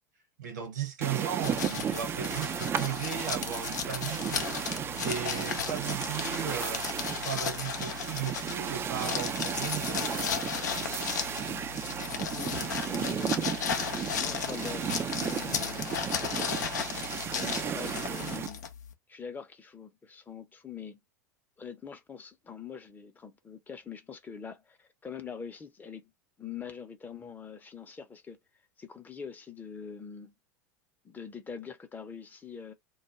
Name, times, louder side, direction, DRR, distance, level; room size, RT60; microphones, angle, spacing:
voice 1, 0.4-4.4 5.0-6.8 7.2-10.0, right 9 dB, 70° right, 1.1 m, -36 dB
sound 1, 1.0-18.5, right 8 dB, 25° right, 0.3 m, -34 dB
sound 2, 1.4-18.9, left 7 dB, 75° left, 0.5 m, -35 dB
voice 2, 11.5-12.0 12.3-16.5 17.4-18.6 19.1-21.0 21.6-26.1 26.4-28.4 28.8-30.3 31.0-32.7, left 6 dB, 20° left, 0.6 m, -44 dB
2.3 x 2.2 x 2.9 m
hypercardioid pair, 85°, 9 cm